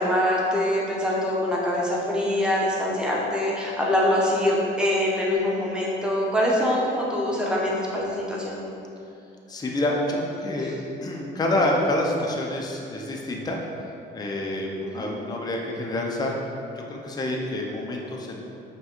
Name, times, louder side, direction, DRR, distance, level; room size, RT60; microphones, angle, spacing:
voice 1, 0.0-8.6 14.8-15.1, left 1 dB, 5° right, -5 dB, 0.8 m, -24 dB
voice 2, 9.5-10.7 11.0-13.6 14.1-16.3 16.8-18.5, left 1 dB, 20° left, -1 dB, 0.5 m, -27 dB
5.4 x 2.2 x 3.0 m, 2.7 s
cardioid pair, 90°, 20 cm